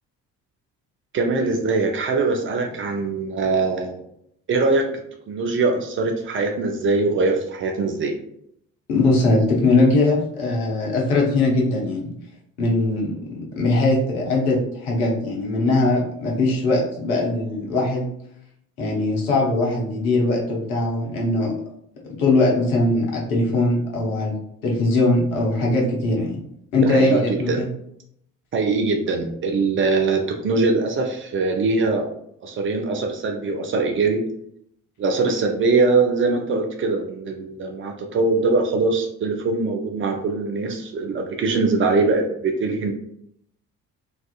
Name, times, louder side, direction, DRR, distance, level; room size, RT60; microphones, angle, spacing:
voice 1, 1.1-4.0 4.5-4.8 5.3-8.1 26.8-27.6 28.5-32.1 32.4-34.2 35.0-42.9, right 3 dB, 30° right, 3 dB, 0.4 m, -22 dB
voice 2, 8.9-12.1 12.6-18.1 18.8-21.5 22.2-24.4 24.6-26.4 26.7-27.7, left 2 dB, 75° left, -1 dB, 0.7 m, -20 dB
2.5 x 2.4 x 2.3 m, 0.73 s
figure-of-eight pair, 45°, 44 cm